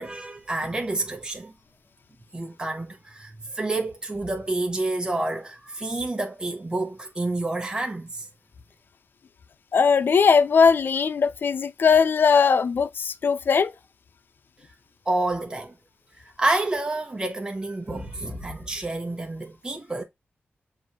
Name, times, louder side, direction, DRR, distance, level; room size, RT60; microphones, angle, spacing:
voice 1, 0.0-1.5 2.3-8.3 15.1-15.7 16.2-20.0, right 2 dB, 20° right, 1.0 m, -29 dB
voice 2, 9.7-13.7, left 6 dB, 55° left, 0.3 m, -19 dB
7.0 x 2.4 x 3.0 m
wide cardioid pair, 135°, 4 cm